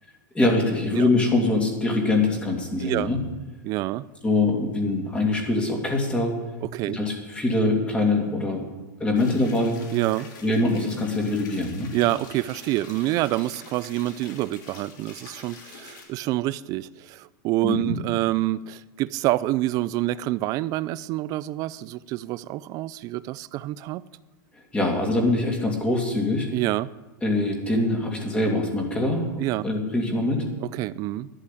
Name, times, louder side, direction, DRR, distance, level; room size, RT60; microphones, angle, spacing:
voice 1, 0.3-3.2 4.2-6.3 6.9-8.6 9.0-9.8 10.4-11.9 17.6-17.9 24.7-26.5 27.2-30.4, left 2 dB, 10° left, 2.7 m, -23 dB
voice 2, 2.8-3.1 3.6-4.0 6.6-7.0 9.9-10.3 11.9-24.0 26.5-26.9 29.4-29.6 30.6-31.3, right 16 dB, 35° right, 0.4 m, -27 dB
sound 1, 9.2-16.0, left 4 dB, 70° left, 3.0 m, -46 dB
11.5 x 11.0 x 8.4 m
supercardioid pair, 150°, 11 cm